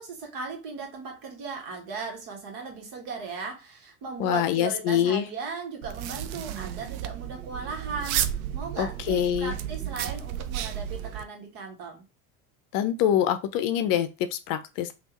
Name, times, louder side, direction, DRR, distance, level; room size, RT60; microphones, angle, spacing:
voice 1, 0.0-8.2 8.5-12.0, right 4 dB, 60° right, 1.4 m, -37 dB
voice 2, 4.2-5.3 8.8-9.5 12.7-14.9, left 10 dB, 50° left, 0.6 m, -25 dB
sound 1, 5.8-11.2, right 11 dB, 80° right, 0.5 m, -33 dB
3.4 x 2.4 x 2.9 m
hypercardioid pair, 85°, 42 cm